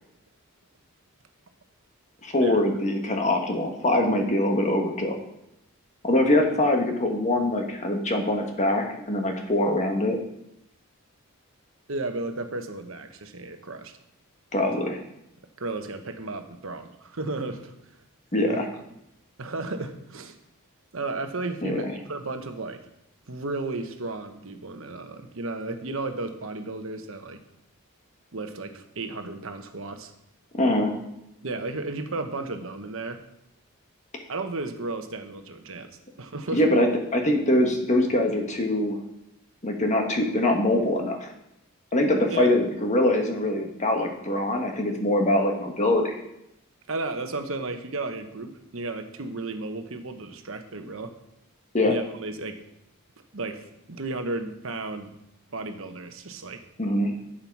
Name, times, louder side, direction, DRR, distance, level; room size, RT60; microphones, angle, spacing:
voice 1, 2.2-5.2 6.0-10.2 14.5-15.0 18.3-18.7 21.6-21.9 30.6-30.9 36.5-39.0 39.6-41.3 41.9-46.2 51.7-51.9 56.8-57.1, left 1 dB, 35° left, 3 dB, 1.5 m, -23 dB
voice 2, 11.9-14.0 15.6-17.7 18.4-18.6 19.4-20.3 20.9-22.8 23.3-27.4 28.3-30.1 31.4-33.2 34.3-35.9 36.2-36.6 42.3-42.6 46.9-51.1 51.9-52.6 53.3-55.1 55.5-56.6, right 2 dB, 65° right, 6 dB, 1.1 m, -33 dB
11.5 x 7.5 x 4.7 m, 0.82 s
head